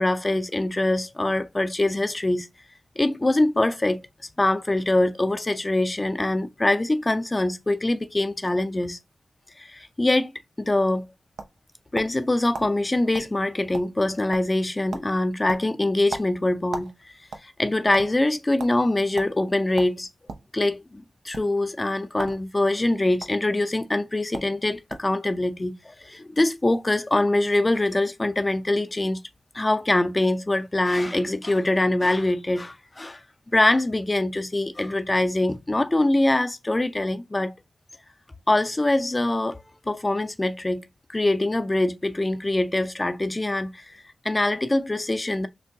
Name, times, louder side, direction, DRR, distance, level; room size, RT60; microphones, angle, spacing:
voice 1, 0.0-2.5 3.0-4.0 4.4-9.0 9.6-10.3 10.6-11.0 11.9-16.9 17.4-20.1 20.5-29.2 29.5-33.2 33.5-37.5 38.5-40.8 41.1-43.8 44.2-45.5, left 2 dB, 25° left, 0.5 m, -23 dB
sound 1, 11.1-12.2 12.5-12.7 13.1-13.3 13.6-14.1 14.3-14.6 14.9-15.1 15.5-16.9 17.2-18.1 18.6-18.7 19.2-19.3 19.8-20.5 21.2-21.4 22.1-22.4 22.7-23.3 24.0-24.1 24.3-24.5 24.9-25.2, right 4 dB, 90° right, 0.5 m, -36 dB
6.0 x 2.2 x 2.7 m
cardioid pair, 50°, 0 cm